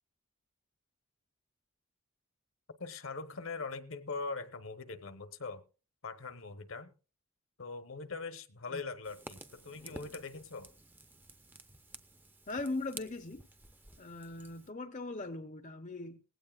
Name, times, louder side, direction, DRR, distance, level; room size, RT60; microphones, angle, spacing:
voice 1, 2.8-5.6 6.0-6.9 7.6-10.7, left 4 dB, 65° left, 1.1 m, -42 dB
Fire, 9.0-14.7, right 2 dB, 10° right, 0.6 m, -52 dB
voice 2, 12.5-13.4 14.0-16.2, left 2 dB, 35° left, 0.6 m, -40 dB
18.5 x 16.0 x 2.4 m
head